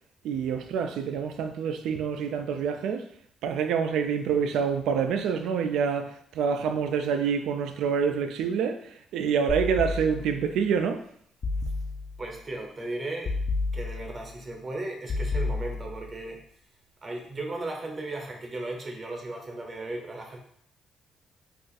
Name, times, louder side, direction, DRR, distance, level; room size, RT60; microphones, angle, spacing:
voice 1, 0.2-3.1 3.4-11.1, right 6 dB, 85° right, 0.3 m, -27 dB
sound 1, 9.5-10.5 11.4-12.3 13.2-14.3 15.1-16.2, left 3 dB, 45° left, 0.4 m, -31 dB
voice 2, 12.2-13.4 13.7-16.4 17.0-20.4, right 2 dB, 35° right, 0.7 m, -36 dB
2.5 x 2.4 x 3.9 m
cardioid pair, 90°, 0 cm